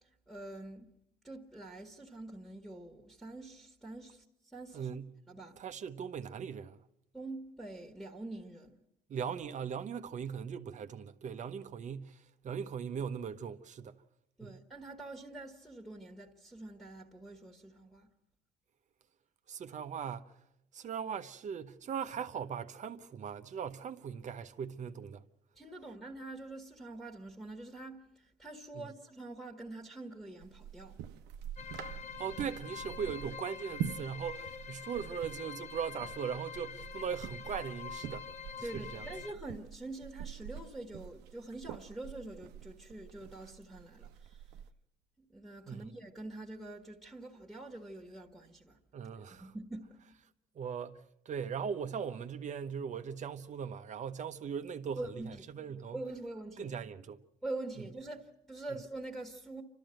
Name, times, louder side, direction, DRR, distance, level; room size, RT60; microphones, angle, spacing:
voice 1, 0.3-0.9 1.2-4.2 4.5-4.9 5.3-5.6 7.1-8.8 14.4-18.1 25.5-31.0 38.6-44.4 45.3-48.8 49.3-50.0 54.9-55.4 55.9-56.7 57.4-59.6, right 2 dB, ahead, 1.7 m, -45 dB
voice 2, 4.7-5.1 5.6-6.8 9.1-14.0 14.4-14.6 19.5-20.4 20.7-25.2 28.7-28.9 32.2-38.3 38.6-39.1 45.7-45.9 48.9-49.5 50.5-56.0 56.6-57.2, right 7 dB, 45° right, 0.9 m, -39 dB
sound 1, 30.4-44.7, right 9 dB, 90° right, 0.8 m, -46 dB
sound 2, 31.6-39.3, left 7 dB, 45° left, 1.0 m, -46 dB
29.0 x 13.0 x 7.8 m
cardioid pair, 110°, 17 cm